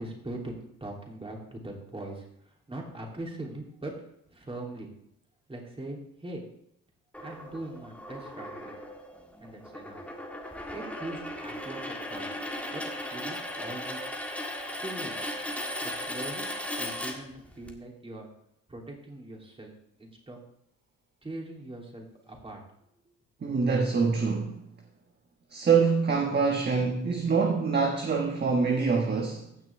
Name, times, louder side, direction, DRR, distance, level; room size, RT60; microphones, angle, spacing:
voice 1, 0.0-3.9 4.3-4.9 5.5-6.4 7.2-8.7 9.4-10.0 10.7-12.3 12.7-12.8 13.1-14.0 14.7-15.2 15.8-16.4 16.8-18.3 18.7-19.7 20.0-20.4 21.2-22.6, right 2 dB, 20° right, -1 dB, 3.2 m, -41 dB
sound 1, 7.1-17.7, left 1 dB, 5° left, 1.6 m, -37 dB
voice 2, 23.4-24.6 25.5-29.5, right 5 dB, 35° right, 2 dB, 1.3 m, -25 dB
15.5 x 6.1 x 3.6 m, 0.74 s
cardioid pair, 90°, 30 cm